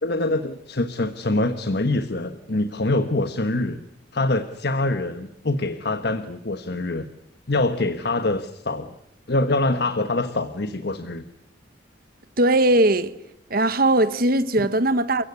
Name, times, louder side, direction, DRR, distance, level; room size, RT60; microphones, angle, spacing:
voice 1, 0.0-3.8 4.1-7.1 7.5-8.9 9.3-11.2 14.6-14.7, left 2 dB, 55° left, 1.2 m, -24 dB
voice 2, 12.4-13.1 13.5-15.2, right 1 dB, 50° right, 1.3 m, -19 dB
29.5 x 16.5 x 9.7 m
head